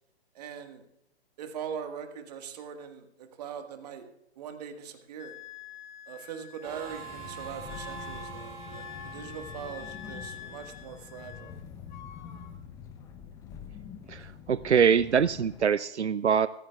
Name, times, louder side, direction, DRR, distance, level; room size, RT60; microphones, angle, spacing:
voice 1, 0.3-0.8 1.4-4.0 4.3-5.4 6.1-11.6, right 7 dB, 35° right, 6 dB, 1.6 m, -41 dB
Wind instrument woodwind instrument, 5.2-11.6 11.9-12.5, left 10 dB, 45° left, 0.9 m, -47 dB
sound 1, 6.6-15.7, left 7 dB, 10° left, 0.6 m, -46 dB
Harmonica, 6.6-11.1, right 7 dB, 60° right, 2.6 m, -45 dB
voice 2, 14.1-16.5, right 7 dB, 85° right, 16 dB, 0.5 m, -24 dB
24.5 x 14.5 x 2.4 m, 0.88 s
figure-of-eight pair, 125°, 33 cm